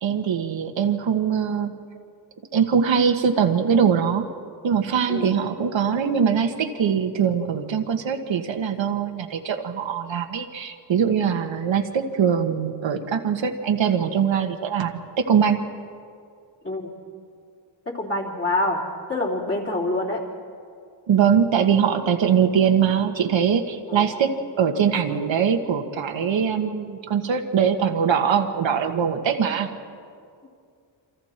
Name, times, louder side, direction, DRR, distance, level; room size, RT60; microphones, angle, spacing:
voice 1, 0.0-1.7 2.5-4.3 4.6-15.6 21.1-24.3 24.6-29.7, right 7 dB, 75° right, 5 dB, 1.5 m, -22 dB
voice 2, 5.1-5.4 16.6-16.9 17.9-18.8 19.1-20.2 23.9-24.3 29.5-29.6 30.4-30.5, left 2 dB, 30° left, -2 dB, 3.6 m, -26 dB
28.5 x 26.0 x 4.4 m, 2.3 s
wide cardioid pair, 140°, 46 cm